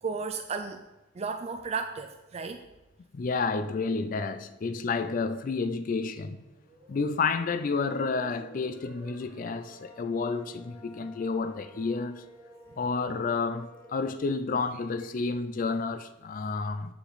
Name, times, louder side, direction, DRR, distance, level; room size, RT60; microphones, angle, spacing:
voice 1, 0.0-0.8 1.1-2.6, right 4 dB, 35° right, 0.4 m, -34 dB
voice 2, 3.1-6.4 6.9-12.2 12.8-16.9, left 4 dB, 45° left, 0.4 m, -30 dB
sound 1, 6.2-13.9, left 1 dB, 15° right, 2.9 m, -52 dB
8.0 x 5.7 x 4.0 m
head